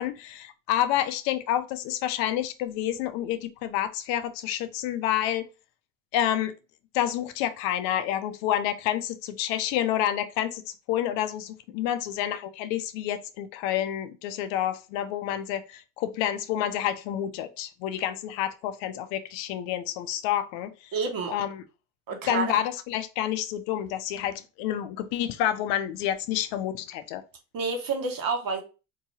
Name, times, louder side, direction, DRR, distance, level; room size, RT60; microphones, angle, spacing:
voice 1, 0.0-5.5 6.1-6.5 6.9-10.6 10.9-20.9 21.3-21.6 22.3-27.2, left 11 dB, 85° left, 0.6 m, -29 dB
voice 2, 20.9-21.3 22.1-22.6 27.5-28.6, right 4 dB, 50° right, 1.3 m, -29 dB
3.7 x 2.8 x 2.7 m
supercardioid pair, 85°, 44 cm